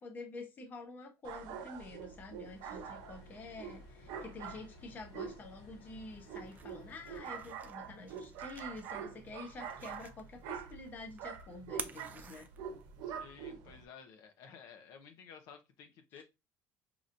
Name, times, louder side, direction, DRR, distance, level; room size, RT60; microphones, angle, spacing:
voice 1, 0.0-12.5 16.2-16.3, left 3 dB, 25° left, 0.7 m, -48 dB
sound 1, 1.2-13.8, right 7 dB, 80° right, 0.9 m, -45 dB
sound 2, 2.4-7.5, left 2 dB, 85° left, 0.9 m, -60 dB
sound 3, 6.1-13.1, right 6 dB, 25° right, 0.3 m, -51 dB
voice 2, 13.0-16.2, left 6 dB, 60° left, 0.7 m, -54 dB
5.3 x 3.0 x 2.5 m
cardioid pair, 170°, 7 cm